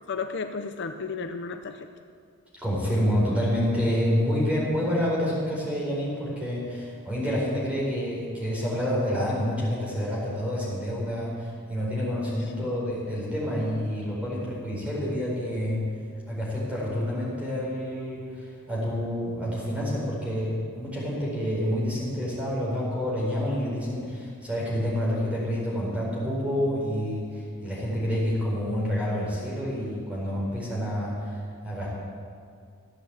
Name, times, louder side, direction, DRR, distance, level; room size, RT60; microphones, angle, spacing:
voice 1, 0.1-1.9 12.6-12.7, left 4 dB, 50° left, 7 dB, 0.6 m, -33 dB
voice 2, 2.6-15.8 16.3-31.9, equal, 5° right, -6 dB, 4.5 m, -28 dB
14.5 x 8.5 x 8.1 m, 2.2 s
head